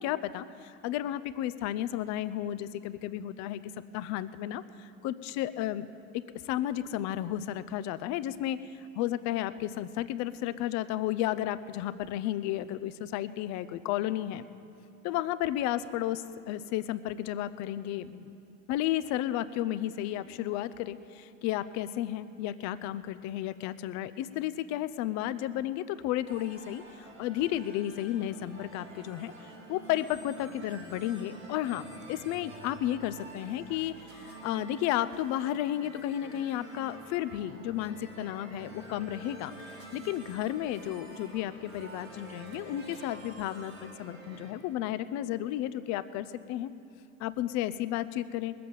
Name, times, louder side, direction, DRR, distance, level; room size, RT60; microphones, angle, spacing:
voice 1, 0.0-3.6 3.9-5.9 6.4-14.5 15.0-18.4 18.7-46.7 47.2-48.5, left 13 dB, 45° left, 14 dB, 0.7 m, -33 dB
sound 1, 26.3-44.5, right 2 dB, 90° right, 3.0 m, -48 dB
21.5 x 7.7 x 6.8 m, 2.6 s
figure-of-eight pair, 65°, 38 cm